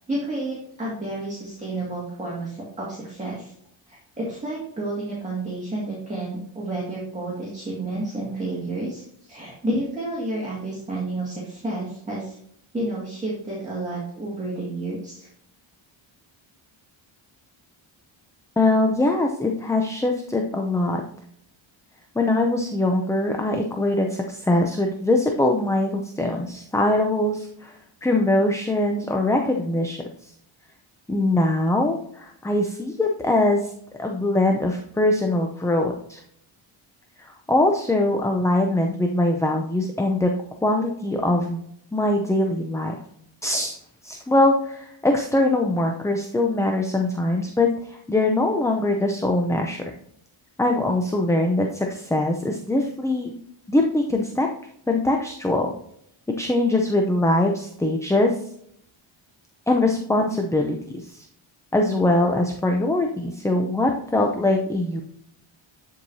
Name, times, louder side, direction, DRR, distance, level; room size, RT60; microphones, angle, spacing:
voice 1, 0.1-3.5 3.9-12.4 12.7-15.3, right 2 dB, 15° right, -6 dB, 2.1 m, -30 dB
voice 2, 18.6-21.0 22.2-30.3 31.1-33.7 34.0-36.2 37.2-40.3 40.6-41.6 41.9-42.9 43.4-43.8 44.0-49.8 50.6-53.3 53.7-54.5 54.9-55.7 56.3-58.4 59.7-61.3 61.7-65.0, left 2 dB, 5° left, 2 dB, 0.5 m, -22 dB
10.0 x 4.7 x 2.7 m, 0.69 s
cardioid pair, 105°, 48 cm